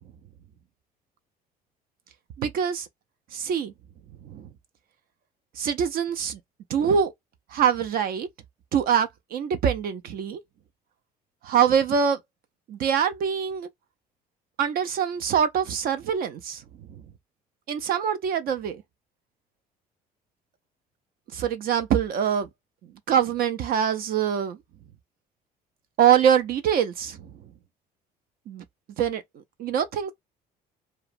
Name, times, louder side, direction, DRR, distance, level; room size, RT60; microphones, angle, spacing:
voice 1, 2.4-2.9 3.3-3.7 4.2-4.5 5.6-6.4 6.7-7.1 7.5-8.3 8.7-10.4 11.4-12.2 12.7-13.7 14.6-16.6 17.7-18.8 21.3-22.5 23.1-24.6 26.0-27.3 28.5-28.6 29.0-29.2 29.6-30.1, right 8 dB, 60° right, 0.4 m, -24 dB
2.8 x 2.1 x 2.4 m
cardioid pair, 110°, 17 cm